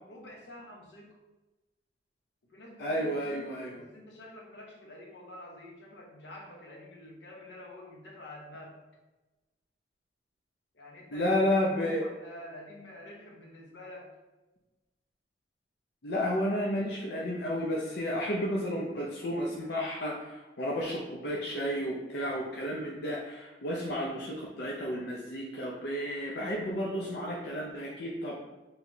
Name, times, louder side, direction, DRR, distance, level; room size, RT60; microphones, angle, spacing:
voice 1, 0.1-1.2 2.5-8.8 10.7-14.1, left 1 dB, 85° left, -1 dB, 1.0 m, -48 dB
voice 2, 2.8-3.8 11.1-12.0 16.0-28.4, equal, 65° left, -3 dB, 0.6 m, -32 dB
4.8 x 3.2 x 2.7 m, 1.1 s
head